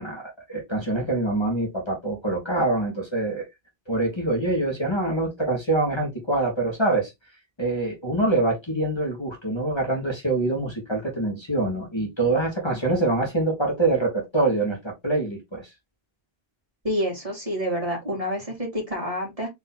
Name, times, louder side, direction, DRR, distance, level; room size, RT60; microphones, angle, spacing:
voice 1, 0.0-3.5 3.9-7.1 7.6-15.7, right 2 dB, 25° left, 1.5 m, -25 dB
voice 2, 16.8-19.5, equal, 35° right, 2.5 m, -28 dB
4.3 x 3.1 x 3.9 m
omnidirectional pair, 1.0 m